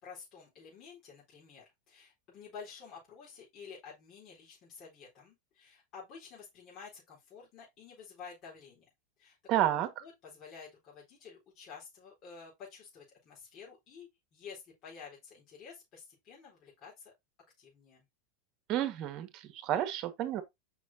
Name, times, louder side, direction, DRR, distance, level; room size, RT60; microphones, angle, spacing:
voice 1, 0.0-8.9 9.2-9.6 10.0-17.1 17.6-18.0, left 6 dB, 40° left, 4.2 m, -51 dB
voice 2, 9.5-9.9 18.7-20.4, right 12 dB, 45° right, 1.6 m, -30 dB
7.0 x 6.0 x 2.8 m
supercardioid pair, 125°, 0 cm